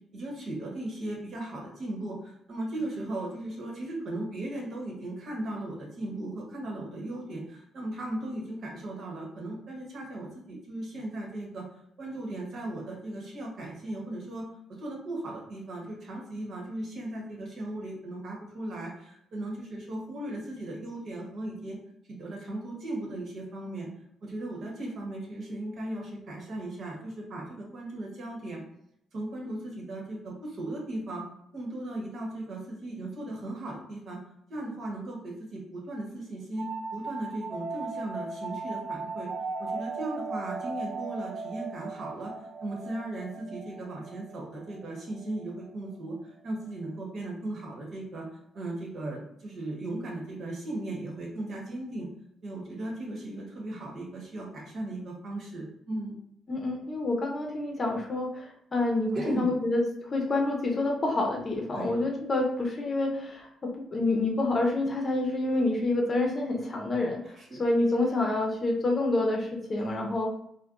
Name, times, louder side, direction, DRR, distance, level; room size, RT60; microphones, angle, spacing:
voice 1, 0.1-11.6 12.0-21.8 22.1-23.9 24.2-28.6 29.1-31.2 31.5-34.2 34.5-39.3 39.6-48.3 48.5-52.1 52.4-56.1 59.1-59.5 61.7-61.9 67.2-67.6 68.0-68.1 69.8-70.1, right 1 dB, 60° right, -2 dB, 1.1 m, -37 dB
sound 1, 36.6-46.0, right 4 dB, 40° right, 0.3 m, -38 dB
voice 2, 56.5-59.8 60.1-67.2 67.6-70.3, left 2 dB, 35° left, 0 dB, 0.7 m, -28 dB
3.3 x 2.2 x 2.5 m, 0.72 s
cardioid pair, 90°, 0 cm